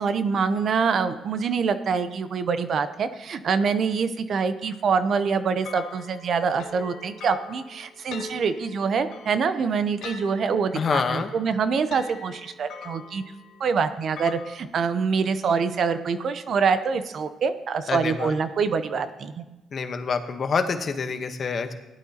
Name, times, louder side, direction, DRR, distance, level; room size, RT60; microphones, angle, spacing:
voice 1, 0.0-13.2 13.6-19.4, right 5 dB, 60° right, 11 dB, 0.7 m, -25 dB
sound 1, 5.6-14.6, left 5 dB, 85° left, 1.5 m, -43 dB
voice 2, 10.7-11.3 17.9-18.3 19.7-21.7, left 5 dB, 45° left, 8 dB, 1.0 m, -26 dB
16.5 x 11.0 x 2.9 m, 1.0 s
cardioid pair, 90°, 0 cm